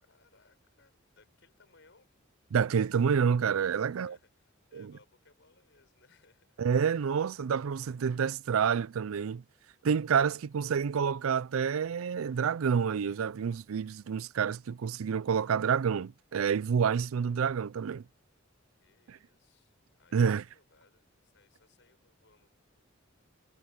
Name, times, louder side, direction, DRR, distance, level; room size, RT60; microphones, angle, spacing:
voice 1, 0.0-2.1 3.7-6.6 18.8-22.5, left 3 dB, 65° left, 6.2 m, -65 dB
voice 2, 2.5-4.2 4.7-4.9 6.6-9.4 9.8-18.0 19.1-19.2 20.1-20.4, right 6 dB, 90° right, 0.4 m, -28 dB
head